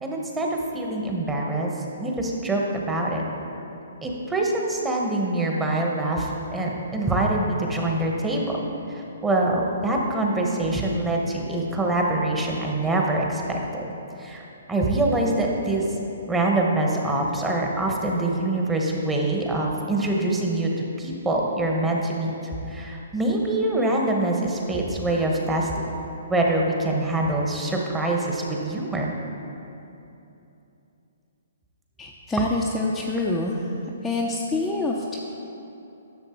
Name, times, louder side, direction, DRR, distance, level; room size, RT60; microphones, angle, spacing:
voice 1, 0.0-1.7 2.0-3.2 4.0-8.4 9.2-13.8 14.2-14.4 14.7-15.8 16.3-22.3 22.7-25.7 26.3-29.1, right 2 dB, 10° right, -1 dB, 1.1 m, -24 dB
voice 2, 32.0-33.7 34.0-35.2, left 2 dB, 5° left, -4 dB, 0.6 m, -26 dB
10.5 x 6.9 x 4.5 m, 2.9 s
hypercardioid pair, 145°, 0 cm